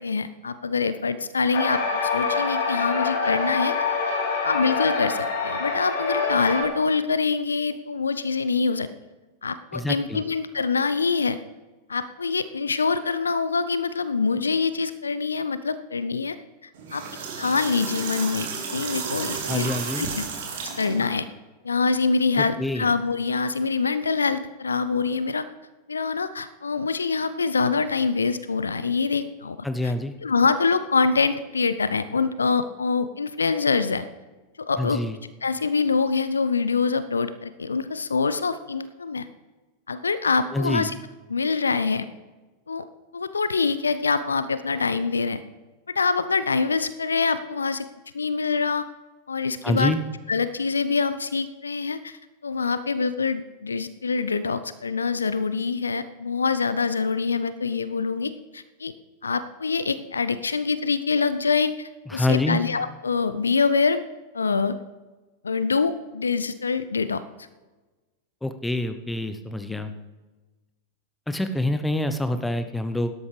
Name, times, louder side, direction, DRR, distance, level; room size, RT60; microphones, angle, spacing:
voice 1, 0.0-3.7 4.4-8.9 9.4-11.4 11.9-16.4 16.6-17.0 17.4-19.7 20.0-20.2 20.8-21.3 21.6-25.5 25.9-29.6 30.2-34.1 34.6-35.0 35.4-39.3 39.9-41.0 41.3-42.1 42.7-42.9 43.1-45.4 45.9-47.9 48.1-48.9 49.3-50.0 50.3-58.9 59.2-64.0 64.3-64.8 65.4-67.2, left 4 dB, 75° left, 14 dB, 0.5 m, -25 dB
sound 1, 1.5-6.6, left 4 dB, 60° left, 2.6 m, -25 dB
voice 2, 9.7-10.2 19.5-20.1 22.3-22.9 29.6-30.1 34.8-35.1 40.5-40.9 49.6-50.0 62.1-62.6 68.4-69.9 71.3-73.1, left 1 dB, 5° left, 9 dB, 0.9 m, -26 dB
sound 2, 16.7-21.1, right 5 dB, 60° right, 3.3 m, -32 dB
17.5 x 12.5 x 3.4 m, 1.2 s
figure-of-eight pair, 90°, 0 cm